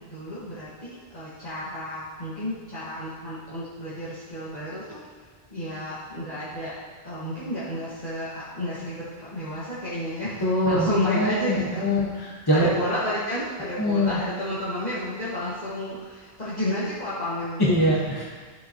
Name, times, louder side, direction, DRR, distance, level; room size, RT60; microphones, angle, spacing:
voice 1, 0.1-5.0 5.5-6.8 7.0-10.4 10.6-11.9 12.5-18.0, left 1 dB, 40° left, -12 dB, 2.0 m, -31 dB
voice 2, 10.4-12.7 13.8-14.2 17.6-18.2, equal, 20° left, -6 dB, 1.5 m, -23 dB
12.0 x 7.0 x 3.0 m, 1.4 s
omnidirectional pair, 1.1 m